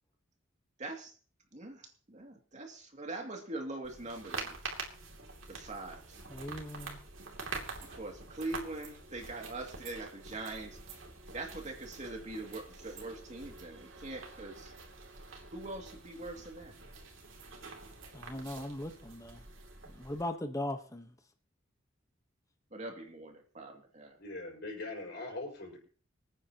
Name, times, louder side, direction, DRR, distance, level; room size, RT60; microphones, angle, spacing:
voice 1, 0.8-1.1 1.5-4.6 5.5-6.2 7.9-10.8 11.3-14.7 15.5-16.7 22.7-24.2, right 2 dB, 40° right, 2 dB, 2.5 m, -42 dB
sound 1, 3.8-20.2, right 4 dB, 80° right, 2.8 m, -46 dB
voice 2, 6.3-7.0 18.1-19.4 19.9-21.1, left 1 dB, 15° left, 6 dB, 1.1 m, -39 dB
voice 3, 24.2-25.8, left 2 dB, 60° left, 0 dB, 5.5 m, -41 dB
25.5 x 9.4 x 3.0 m, 0.43 s
head